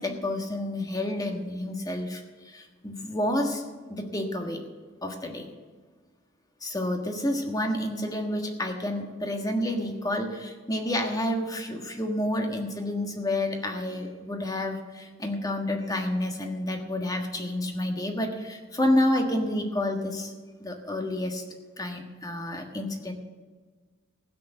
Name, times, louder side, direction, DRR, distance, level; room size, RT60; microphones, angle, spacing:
voice 1, 0.0-3.6 3.9-4.6 5.0-5.5 6.6-20.3 20.6-21.4 21.8-23.1, left 1 dB, 20° left, 3 dB, 1.5 m, -29 dB
15.5 x 6.7 x 8.1 m, 1.4 s
head